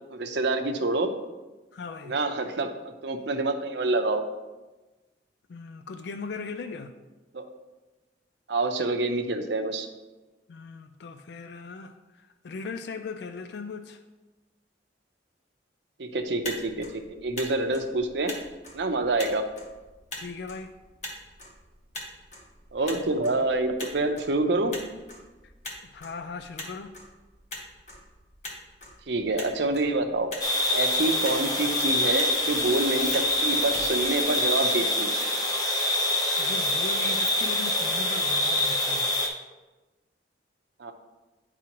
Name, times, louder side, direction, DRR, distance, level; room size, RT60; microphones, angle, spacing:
voice 1, 0.1-1.1 2.0-2.7 3.0-4.2 7.3-7.4 8.5-9.9 16.0-18.3 18.7-19.4 22.7-24.7 29.1-30.3 30.7-35.2 40.8-40.9, right 2 dB, 70° right, 0.7 m, -27 dB
voice 2, 1.7-2.1 5.5-6.9 10.5-14.0 20.2-20.7 25.9-26.9 36.4-39.1, left 4 dB, 60° left, 0.3 m, -38 dB
Motor vehicle (road), 16.3-34.8, left 1 dB, 40° left, 1.2 m, -43 dB
sound 1, 30.4-39.3, left 1 dB, 20° left, 0.8 m, -25 dB
9.8 x 4.7 x 3.0 m
head